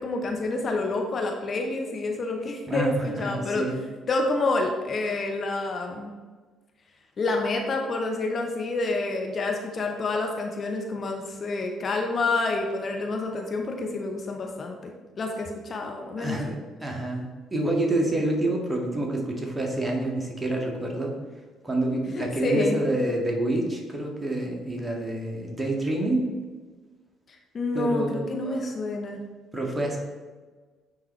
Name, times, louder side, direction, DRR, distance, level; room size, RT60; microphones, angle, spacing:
voice 1, 0.0-3.6 4.1-6.1 7.2-16.5 22.1-22.8 27.3-29.2, left 2 dB, 45° left, 2 dB, 0.8 m, -28 dB
voice 2, 2.7-3.8 16.2-21.1 21.6-26.3 27.7-28.6 29.5-30.0, right 1 dB, 20° right, 0 dB, 1.7 m, -28 dB
9.2 x 3.7 x 3.2 m, 1.4 s
hypercardioid pair, 50°, 0 cm